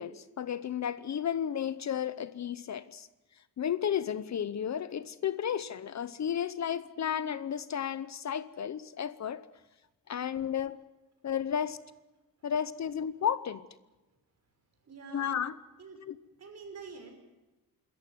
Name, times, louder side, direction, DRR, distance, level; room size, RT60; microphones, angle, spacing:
voice 1, 0.0-3.1 3.6-9.5 10.1-10.8 11.2-11.8 12.4-13.7 15.1-15.5 16.0-16.2, left 8 dB, 50° left, 15 dB, 0.8 m, -33 dB
voice 2, 14.9-15.4 15.8-16.0 16.4-17.1, right 5 dB, 45° right, 4 dB, 5.7 m, -46 dB
26.5 x 14.0 x 9.4 m, 1.1 s
wide cardioid pair, 140°, 36 cm